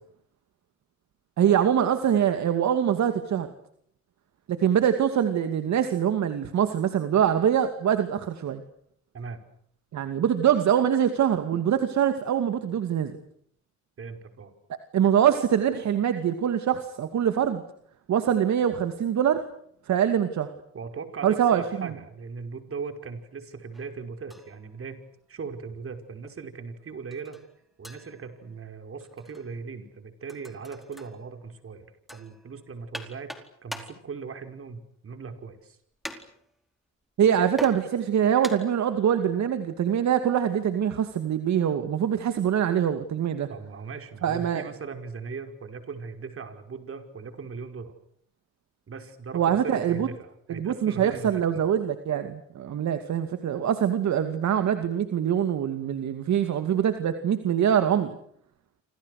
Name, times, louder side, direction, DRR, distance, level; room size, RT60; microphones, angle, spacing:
voice 1, 1.4-3.5 4.5-8.6 9.9-13.1 14.9-17.6 18.1-19.4 19.9-20.5 21.2-21.9 37.2-43.5 44.2-44.6 49.3-50.1 50.5-58.1, right 9 dB, 65° right, 8 dB, 2.5 m, -24 dB
voice 2, 14.0-14.5 20.7-25.0 25.3-27.4 27.8-31.9 32.1-33.3 33.6-35.8 43.5-47.9 48.9-51.6, right 5 dB, 45° right, 7 dB, 5.5 m, -39 dB
sound 1, 23.7-24.0 24.3-25.1 26.2-26.5 27.1-28.7 29.0-29.6 30.3-31.5 32.1-34.1 34.6-34.7 35.1-35.2 36.0-36.6 37.6-38.9 39.7-39.8, equal, ahead, 4.4 m, -43 dB
28.5 x 27.0 x 6.7 m, 0.66 s
cardioid pair, 90°, 30 cm